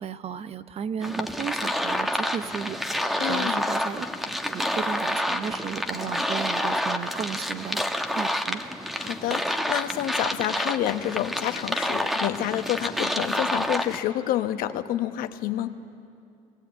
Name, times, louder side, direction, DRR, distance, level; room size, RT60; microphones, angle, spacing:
voice 1, 0.0-2.8 3.2-4.1 4.4-8.6, right 7 dB, 40° right, 13 dB, 0.8 m, -34 dB
sound 1, 1.0-14.0, equal, ahead, 1.2 m, -28 dB
voice 2, 3.2-3.7 9.0-15.7, left 12 dB, 70° left, 9 dB, 1.0 m, -28 dB
21.0 x 18.5 x 8.5 m, 2.5 s
supercardioid pair, 100°, 16 cm